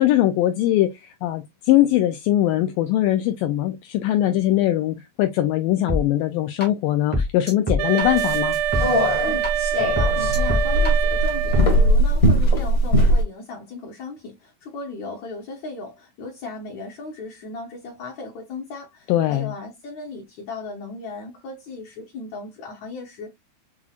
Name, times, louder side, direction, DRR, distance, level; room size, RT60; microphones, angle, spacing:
voice 1, 0.0-8.6 19.1-19.5, left 13 dB, 90° left, 1.9 m, -21 dB
sound 1, 5.9-6.0 6.6-6.7 7.1-9.5 9.8-10.9 11.5-11.7, left 1 dB, 15° left, 0.3 m, -25 dB
Wind instrument woodwind instrument, 7.8-12.0, right 11 dB, 85° right, 2.0 m, -25 dB
sound 2, 8.0-13.2, equal, 45° left, 1.0 m, -20 dB
voice 2, 9.2-23.3, left 3 dB, 65° left, 1.9 m, -36 dB
7.1 x 2.4 x 2.4 m
omnidirectional pair, 4.5 m